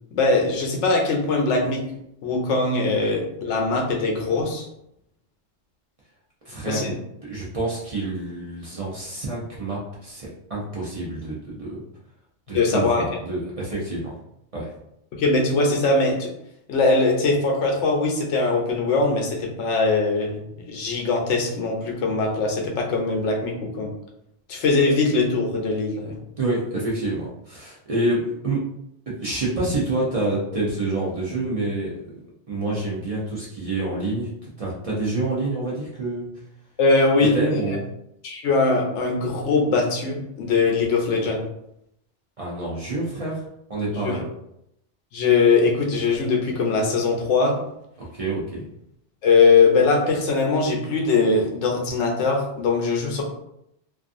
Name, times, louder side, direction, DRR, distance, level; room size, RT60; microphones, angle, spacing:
voice 1, 0.1-1.8 2.2-4.7 6.7-6.9 12.5-13.0 15.1-16.3 16.7-23.9 24.5-26.2 36.8-37.8 38.2-41.4 44.0-44.1 45.1-47.6 49.2-53.2, left 3 dB, 90° left, 1 dB, 0.9 m, -21 dB
voice 2, 6.4-6.9 7.2-11.8 12.5-14.1 14.5-14.7 26.4-28.6 29.1-32.0 32.5-34.3 34.6-36.3 37.3-37.8 42.4-43.4 43.7-44.2 48.0-48.6, right 2 dB, 45° right, -6 dB, 0.5 m, -27 dB
2.5 x 2.3 x 2.5 m, 0.78 s
omnidirectional pair, 1.2 m